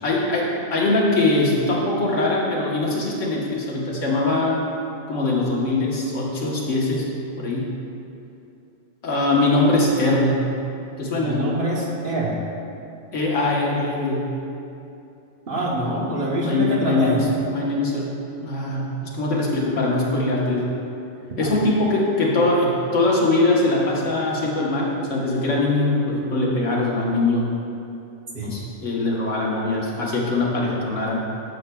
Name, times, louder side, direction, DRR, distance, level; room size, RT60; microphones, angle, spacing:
voice 1, 0.0-4.6 5.1-7.1 7.4-7.7 9.0-10.4 11.0-11.5 13.1-14.3 16.4-18.1 18.4-20.7 21.4-27.4 28.4-31.2, left 2 dB, 75° left, -4 dB, 1.5 m, -22 dB
voice 2, 11.2-12.4 15.5-17.2 21.4-21.6 28.3-28.5, right 1 dB, 50° right, -4 dB, 1.1 m, -25 dB
11.0 x 6.4 x 2.3 m, 2.7 s
omnidirectional pair, 1.3 m